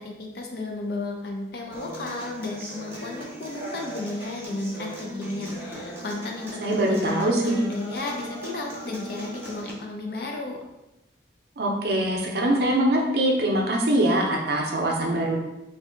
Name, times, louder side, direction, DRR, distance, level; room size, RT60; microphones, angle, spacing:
voice 1, 0.0-10.6, left 2 dB, 55° left, 1 dB, 0.5 m, -33 dB
Human voice / Acoustic guitar, 1.7-9.7, equal, 15° right, 0.6 m, -38 dB
voice 2, 6.6-7.5 11.6-15.4, right 1 dB, 60° right, 0 dB, 0.6 m, -23 dB
2.6 x 2.2 x 3.8 m, 0.95 s
head